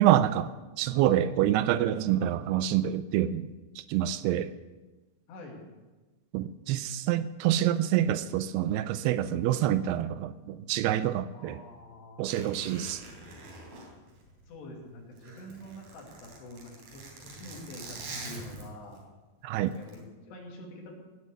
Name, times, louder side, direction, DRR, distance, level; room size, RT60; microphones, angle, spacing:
voice 1, 0.0-3.5 3.8-4.5 6.3-11.6 12.2-13.0 19.4-19.7, right 12 dB, 80° right, 13 dB, 2.5 m, -27 dB
voice 2, 5.3-5.6 11.3-12.9 14.4-18.0 18.2-19.0 19.7-21.0, left 1 dB, 90° left, 0 dB, 4.8 m, -46 dB
Zipper (clothing), 12.3-14.7 15.0-19.0 19.7-20.0, right 2 dB, 60° right, 4.9 m, -45 dB
18.5 x 7.6 x 8.1 m, 1.2 s
omnidirectional pair, 4.7 m